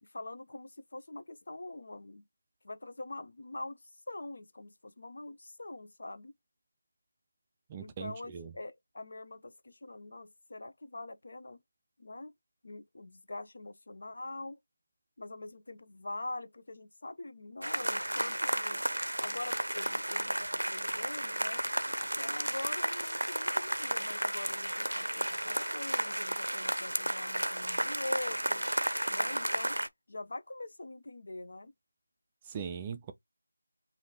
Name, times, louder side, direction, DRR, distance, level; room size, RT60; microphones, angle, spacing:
voice 1, 0.0-2.3 2.6-6.3 7.8-11.6 12.0-12.3 12.6-14.6 15.2-18.8 19.2-21.6 22.0-28.6 29.1-29.8 30.1-31.7, left 2 dB, 55° left, 0.7 m, -44 dB
voice 2, 7.7-8.5 32.5-33.1, right 7 dB, 15° right, 0.3 m, -40 dB
sound 1, 17.6-29.9, right 1 dB, 85° right, 0.6 m, -33 dB
4.9 x 2.7 x 2.8 m
figure-of-eight pair, 165°, 0 cm